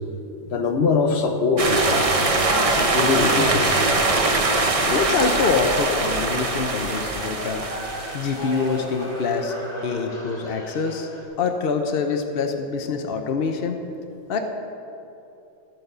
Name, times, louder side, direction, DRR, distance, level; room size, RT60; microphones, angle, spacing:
voice 1, 0.5-2.2 2.7-3.8 4.2-4.3, left 4 dB, 45° left, 5 dB, 0.9 m, -22 dB
sound 1, 1.6-8.8, right 2 dB, 55° right, 0.4 m, -22 dB
sound 2, 4.5-11.2, equal, 25° left, 2.9 m, -36 dB
voice 2, 4.9-7.6 8.1-9.5 9.8-11.1 11.4-13.8 14.3-14.4, left 5 dB, 65° left, 5 dB, 0.5 m, -25 dB
12.0 x 8.7 x 6.7 m, 2.9 s
omnidirectional pair, 2.0 m